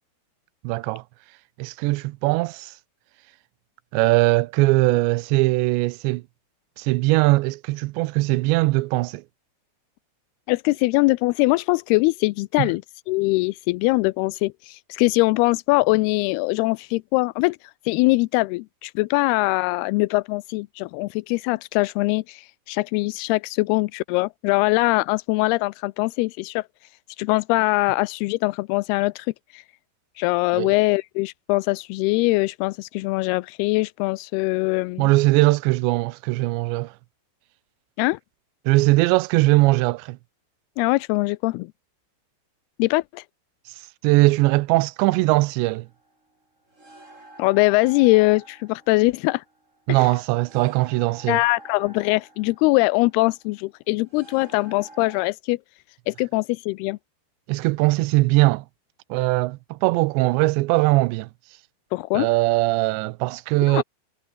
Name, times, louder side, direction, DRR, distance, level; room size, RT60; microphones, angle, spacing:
voice 1, 0.6-1.0 1.6-2.7 3.9-6.2 6.8-9.2 12.6-12.7 30.5-30.7 35.0-36.9 38.7-40.2 44.0-45.9 49.9-51.4 57.5-58.7 59.1-61.3 62.1-63.8, right 21 dB, 90° right, 2.9 m, -20 dB
voice 2, 10.5-12.8 13.1-17.6 17.9-26.7 27.2-29.3 29.5-29.6 30.2-35.1 38.0-38.2 40.8-41.7 42.8-43.2 47.4-49.4 49.9-50.0 51.3-55.6 56.1-57.0 61.9-62.3 63.6-63.8, left 23 dB, 85° left, 2.3 m, -22 dB
sound 1, 45.7-55.3, right 2 dB, 15° right, 6.4 m, -48 dB
omnidirectional pair, 5.0 m